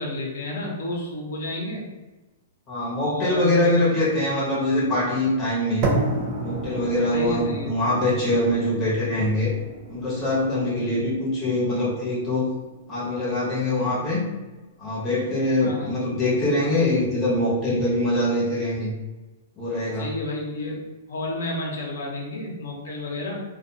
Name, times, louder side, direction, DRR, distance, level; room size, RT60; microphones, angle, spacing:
voice 1, 0.0-1.8 3.0-3.8 7.1-7.7 10.7-11.1 15.6-16.0 20.0-20.8 21.1-23.4, left 2 dB, 80° left, -2 dB, 0.7 m, -31 dB
voice 2, 2.7-5.9 6.4-9.5 9.9-12.6 12.9-14.3 14.8-18.9 19.6-20.1, left 1 dB, 20° left, -7 dB, 0.9 m, -23 dB
sound 1, 5.8-13.9, right 3 dB, 35° right, 0.4 m, -32 dB
2.4 x 2.3 x 2.7 m, 1.1 s
hypercardioid pair, 155°, 0 cm